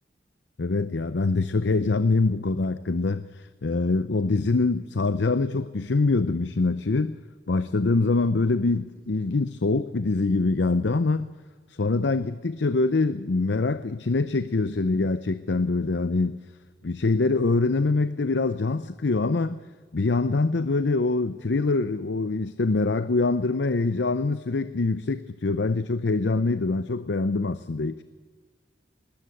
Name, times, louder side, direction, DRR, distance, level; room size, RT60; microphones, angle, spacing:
voice 1, 0.6-7.2 7.5-11.3 11.7-16.4 16.8-19.6 19.9-28.0, left 3 dB, 70° left, 0.6 m, -24 dB
20.5 x 18.5 x 8.3 m
head